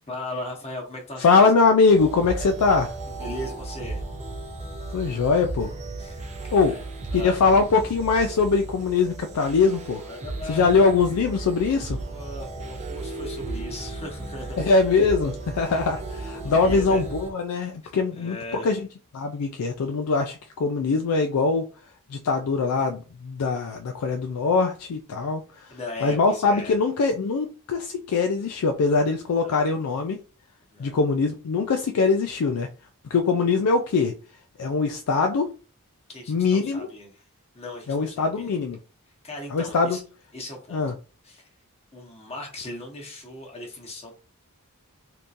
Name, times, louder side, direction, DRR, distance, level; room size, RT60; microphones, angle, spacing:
voice 1, 0.1-1.5 3.2-4.0 6.0-7.4 10.0-11.0 12.0-14.6 16.3-17.1 17.8-18.7 25.7-26.8 29.4-29.6 30.7-31.0 36.1-37.2 37.5-38.5 39.2-40.0 40.3-40.8 41.2-41.5 41.9-44.1, left 2 dB, 30° left, 1.1 m, -38 dB
voice 2, 1.2-2.9 4.9-5.7 6.5-6.8 7.1-10.0 10.5-12.0 14.6-18.9 19.1-21.6 22.1-25.7 26.0-30.2 30.8-32.7 33.1-34.1 34.6-35.5 36.3-36.9 37.9-38.8 39.5-40.0 40.7-40.9, left 4 dB, 85° left, 0.4 m, -22 dB
sound 1, 1.9-17.3, right 2 dB, 30° right, 0.5 m, -35 dB
3.6 x 2.8 x 2.5 m
head